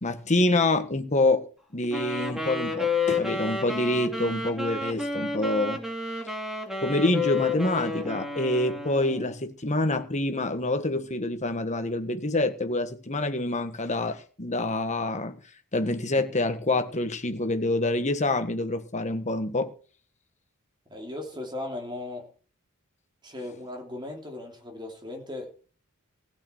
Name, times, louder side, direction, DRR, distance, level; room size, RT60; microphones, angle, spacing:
voice 1, 0.0-1.5 1.7-5.8 6.8-15.4 15.7-19.7, left 2 dB, 30° left, 1.6 m, -26 dB
Wind instrument woodwind instrument, 1.9-9.3, left 3 dB, ahead, 2.7 m, -31 dB
voice 2, 20.9-22.3 23.2-25.7, left 2 dB, 20° right, 3.3 m, -37 dB
16.0 x 8.7 x 4.6 m
head